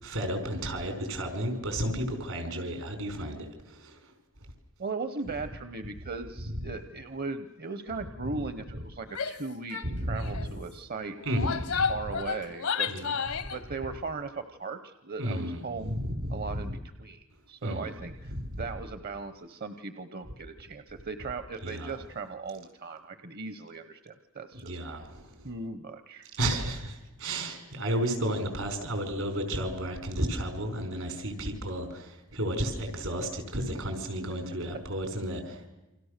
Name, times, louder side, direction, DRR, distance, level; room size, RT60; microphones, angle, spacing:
voice 1, 0.0-4.0 9.8-10.5 11.2-11.9 12.9-13.1 15.2-16.6 17.6-17.8 18.3-18.6 21.6-21.9 24.5-25.5 26.4-35.7, right 1 dB, 80° right, 6 dB, 5.1 m, -32 dB
voice 2, 4.8-11.2 11.9-12.9 13.5-16.0 16.3-25.0 25.4-26.3, right 4 dB, 50° right, 10 dB, 0.9 m, -38 dB
Female speech woman speaking / Yell, 9.1-9.4 9.7-9.9 10.2-10.5 11.2-13.6, left 6 dB, 80° left, 1.3 m, -31 dB
29.0 x 25.5 x 6.7 m, 1.0 s
head